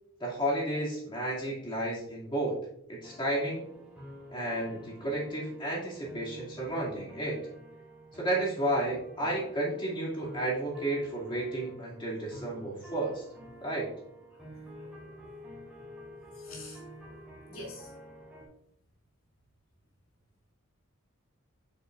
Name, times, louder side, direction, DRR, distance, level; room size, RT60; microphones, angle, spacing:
voice 1, 0.2-2.6 2.9-3.6 4.3-7.4 8.2-13.2 13.6-13.9, right 1 dB, 25° left, -4 dB, 2.3 m, -32 dB
sound 1, 3.0-18.5, equal, 5° right, 2.6 m, -49 dB
voice 2, 16.4-17.1 17.5-17.9, left 2 dB, 80° left, -3 dB, 2.8 m, -47 dB
7.8 x 7.1 x 2.5 m, 0.73 s
head